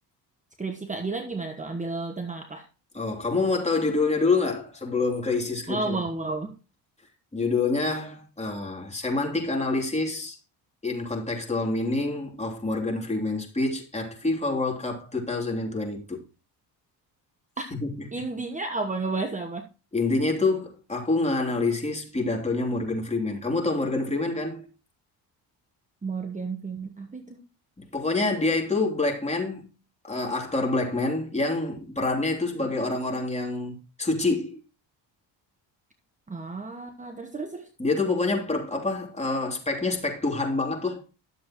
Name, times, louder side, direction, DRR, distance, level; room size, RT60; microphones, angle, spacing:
voice 1, 0.6-2.7 5.7-6.5 17.6-17.7 18.1-19.6 26.0-27.4 32.6-32.7 36.3-37.7, right 3 dB, 15° right, 1.1 m, -32 dB
voice 2, 2.9-6.0 7.3-10.4 10.8-16.2 17.8-18.1 19.9-24.7 27.8-29.7 30.0-34.6 37.8-41.0, left 3 dB, 15° left, 3.1 m, -27 dB
12.0 x 7.3 x 3.0 m
supercardioid pair, 85°, 43 cm